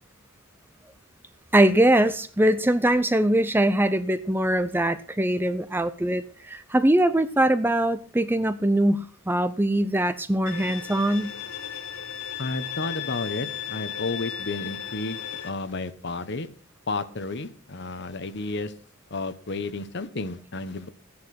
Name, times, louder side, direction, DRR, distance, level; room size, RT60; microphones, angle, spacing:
voice 1, 1.5-11.3, right 1 dB, 10° right, 0.6 m, -22 dB
Bowed string instrument, 10.5-15.5, left 9 dB, 90° left, 1.4 m, -35 dB
voice 2, 12.4-16.5 16.9-18.7 19.1-20.9, left 3 dB, 55° left, 1.1 m, -32 dB
14.0 x 9.7 x 6.0 m
head